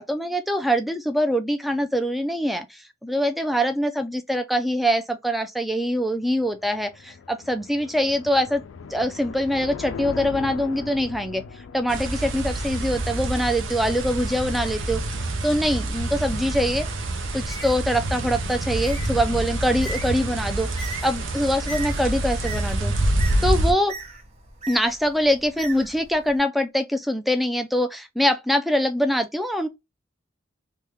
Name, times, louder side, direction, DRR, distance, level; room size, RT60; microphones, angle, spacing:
voice 1, 0.0-8.6 8.9-16.9 17.3-20.7 21.0-22.9 23.4-23.9 24.7-29.7, equal, ahead, 0.3 m, -24 dB
sound 1, 6.3-13.7, left 5 dB, 75° left, 0.4 m, -39 dB
sound 2, 11.9-23.7, right 1 dB, 65° right, 0.6 m, -27 dB
Bird, 17.3-26.4, right 3 dB, 30° right, 0.9 m, -40 dB
3.4 x 2.2 x 3.0 m
head